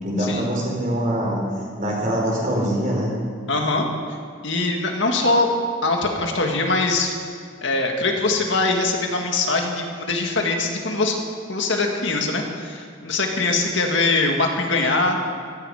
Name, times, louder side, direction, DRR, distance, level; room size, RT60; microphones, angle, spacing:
voice 1, 0.0-1.4 1.8-3.1, equal, 40° right, -3 dB, 4.6 m, -23 dB
voice 2, 3.5-3.9 4.4-5.5 5.8-7.1 7.6-11.2 11.5-15.2, left 3 dB, 65° left, 2 dB, 2.0 m, -22 dB
15.0 x 14.5 x 5.0 m, 2.1 s
head